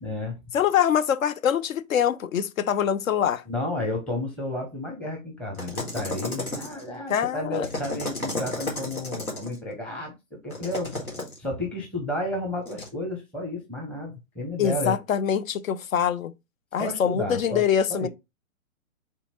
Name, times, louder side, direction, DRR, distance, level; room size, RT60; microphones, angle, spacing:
voice 1, 0.0-0.3 3.5-10.1 10.4-10.9 11.4-15.0 16.8-18.1, left 1 dB, 5° left, 0.7 m, -32 dB
voice 2, 0.5-3.4 7.1-7.7 14.6-16.3 16.7-18.1, left 8 dB, 70° left, 0.6 m, -24 dB
sound 1, 5.5-6.9 7.5-9.6 10.5-11.4 12.7-12.9, left 2 dB, 90° left, 1.7 m, -33 dB
3.6 x 2.9 x 4.2 m
figure-of-eight pair, 120°, 42 cm